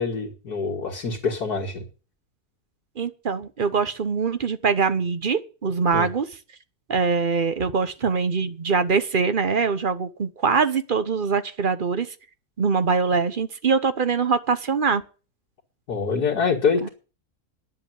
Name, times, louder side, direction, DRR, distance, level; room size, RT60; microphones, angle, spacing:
voice 1, 0.0-1.9 5.9-6.1 15.9-16.9, left 5 dB, 85° left, 2.4 m, -25 dB
voice 2, 3.0-6.3 6.9-12.1 12.6-15.0 16.8-16.9, right 5 dB, 40° right, 0.9 m, -23 dB
10.5 x 7.6 x 9.2 m
omnidirectional pair, 1.6 m